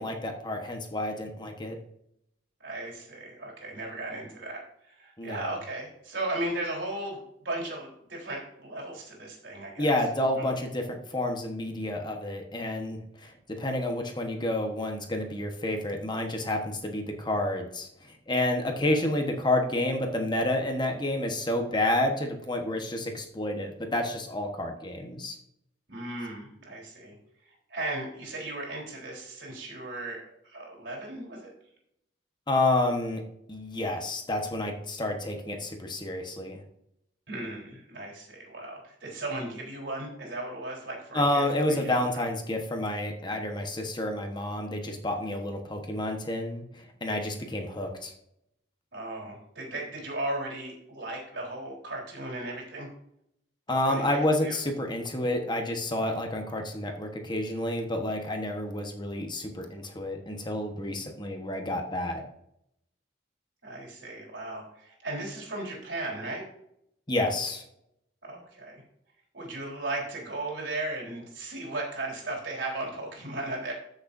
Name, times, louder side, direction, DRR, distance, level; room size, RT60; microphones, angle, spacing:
voice 1, 0.0-1.8 5.2-5.6 9.8-17.9 18.3-25.4 32.5-33.2 33.5-36.6 41.1-48.1 53.7-62.2 67.1-67.6, left 1 dB, 25° left, 3 dB, 1.2 m, -29 dB
voice 2, 2.6-7.2 7.4-9.9 10.3-10.5 18.8-19.0 25.9-27.1 27.7-31.5 37.3-42.2 48.9-52.9 53.7-54.6 63.6-66.4 68.2-68.8 69.3-73.7, right 2 dB, 70° right, -2 dB, 3.8 m, -36 dB
14.5 x 6.6 x 2.7 m, 0.75 s
head